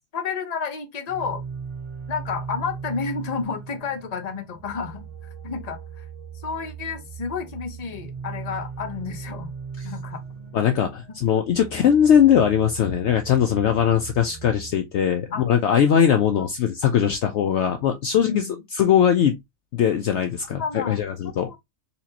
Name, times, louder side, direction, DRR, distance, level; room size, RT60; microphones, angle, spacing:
voice 1, 0.1-1.4 2.1-5.1 5.4-6.0 6.4-9.5 9.8-10.2 11.7-11.9 15.3-15.5 16.4-16.5 18.2-18.6 20.6-21.0 21.3-21.6, left 5 dB, 35° left, 0.8 m, -31 dB
sound 1, 1.1-14.7, right 6 dB, 60° right, 1.9 m, -38 dB
voice 2, 10.5-19.4 19.7-21.5, left 8 dB, 65° left, 0.8 m, -20 dB
4.3 x 2.9 x 2.8 m
omnidirectional pair, 1.4 m